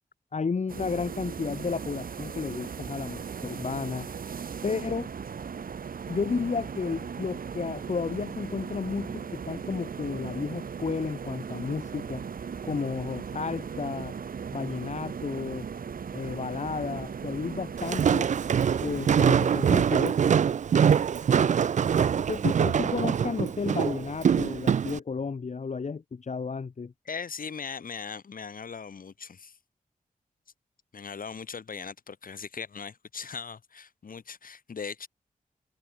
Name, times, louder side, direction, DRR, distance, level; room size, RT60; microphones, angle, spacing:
voice 1, 0.3-4.1 4.6-5.1 6.1-12.2 12.7-14.1 14.5-15.7 16.1-18.3 18.8-20.3 22.2-26.9, left 5 dB, 55° left, 1.9 m, -32 dB
sound 1, 0.7-20.1, right 6 dB, 85° right, 1.6 m, -38 dB
Walk footsteps, 17.8-25.0, right 7 dB, 60° right, 0.4 m, -24 dB
voice 2, 27.1-29.6 30.9-35.1, left 6 dB, 80° left, 5.7 m, -39 dB
wide cardioid pair, 135°, 14 cm